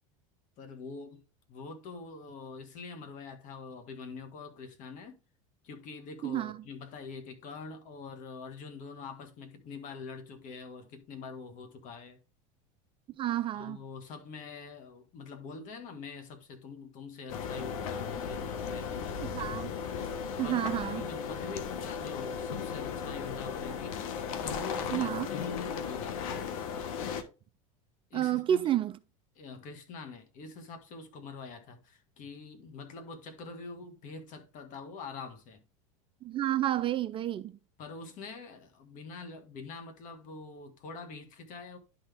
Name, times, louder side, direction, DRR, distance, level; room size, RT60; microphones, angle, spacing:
voice 1, 0.6-5.2 5.6-12.2 13.5-19.6 20.4-24.0 24.4-26.2 28.1-28.7 29.3-35.6 37.8-41.8, left 4 dB, 50° left, 1.8 m, -45 dB
voice 2, 6.2-6.6 13.2-13.8 19.2-19.7 20.4-21.0 24.9-25.3 28.1-28.9 36.2-37.6, right 12 dB, 30° right, 0.4 m, -30 dB
sound 1, 17.3-27.2, left 6 dB, 80° left, 1.1 m, -36 dB
11.0 x 4.2 x 3.5 m
supercardioid pair, 120°, 18 cm